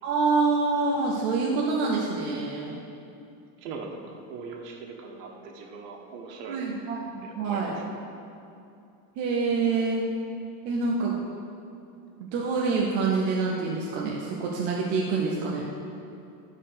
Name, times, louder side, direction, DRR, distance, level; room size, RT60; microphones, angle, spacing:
voice 1, 0.0-2.8 6.5-7.8 9.2-10.0 10.6-11.2 12.2-15.7, right 4 dB, 25° right, -2 dB, 0.3 m, -26 dB
voice 2, 3.6-6.7 7.2-7.8, right 4 dB, 85° right, 1 dB, 1.6 m, -40 dB
14.0 x 4.6 x 6.5 m, 2.6 s
cardioid pair, 180°, 48 cm